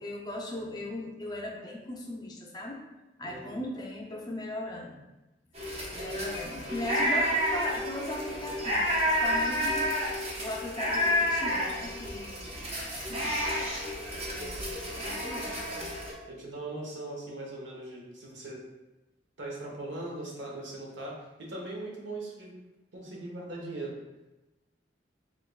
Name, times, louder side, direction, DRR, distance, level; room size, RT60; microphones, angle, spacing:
voice 1, 0.0-2.8 3.2-5.0 5.9-10.0 10.4-12.4 13.0-13.1 14.1-15.9, left 1 dB, 25° left, 0 dB, 0.4 m, -38 dB
voice 2, 3.2-3.6 12.4-12.8 16.3-18.6 19.4-22.5 22.9-23.9, right 2 dB, 75° right, -2 dB, 0.9 m, -40 dB
sound 1, 5.5-16.1, equal, 35° right, 0.7 m, -30 dB
3.6 x 3.4 x 2.2 m, 1.0 s
head